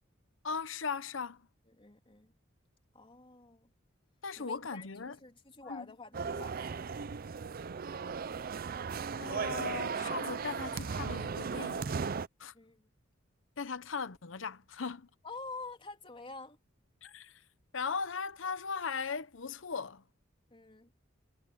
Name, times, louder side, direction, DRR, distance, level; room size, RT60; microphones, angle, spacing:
voice 1, 0.4-1.5 4.2-5.2 5.6-5.9 9.2-11.9 12.4-12.5 13.6-15.1 17.0-17.4 17.7-20.1, left 5 dB, 75° left, 0.9 m, -38 dB
voice 2, 1.8-2.3 2.9-3.7 4.4-7.0 12.5-12.9 15.2-16.6 20.5-20.9, left 3 dB, 25° left, 3.2 m, -48 dB
sound 1, 6.1-12.3, right 5 dB, 50° right, 0.5 m, -36 dB
head